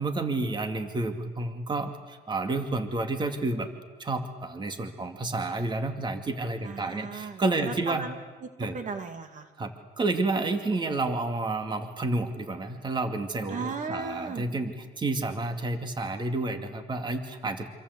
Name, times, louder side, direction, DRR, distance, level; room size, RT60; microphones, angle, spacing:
voice 1, 0.0-3.7 4.0-8.1 8.6-8.8 9.6-17.7, right 2 dB, 25° right, 6 dB, 2.4 m, -30 dB
voice 2, 6.6-9.5 13.5-14.4, right 4 dB, 45° right, 7 dB, 2.5 m, -37 dB
27.0 x 26.5 x 8.3 m, 1.3 s
cardioid pair, 110°, 17 cm